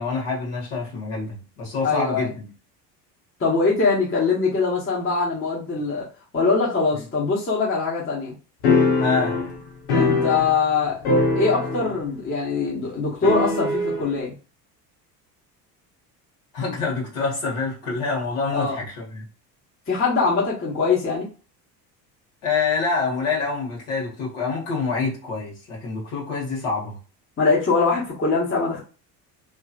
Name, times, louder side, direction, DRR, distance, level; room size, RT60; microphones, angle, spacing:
voice 1, 0.0-2.5 7.0-7.1 9.0-9.4 16.5-19.2 22.4-27.0, left 4 dB, 65° left, -4 dB, 1.7 m, -26 dB
voice 2, 1.8-2.3 3.4-6.1 6.3-8.3 10.0-11.0 11.3-14.3 18.5-18.8 19.9-21.3 27.4-28.8, left 4 dB, 25° left, -5 dB, 1.3 m, -22 dB
sound 1, 8.6-10.8 11.0-12.1 12.3-12.4 13.2-14.0, left 3 dB, 85° left, 1.2 m, -22 dB
3.1 x 2.9 x 2.5 m, 0.35 s
hypercardioid pair, 75°, 48 cm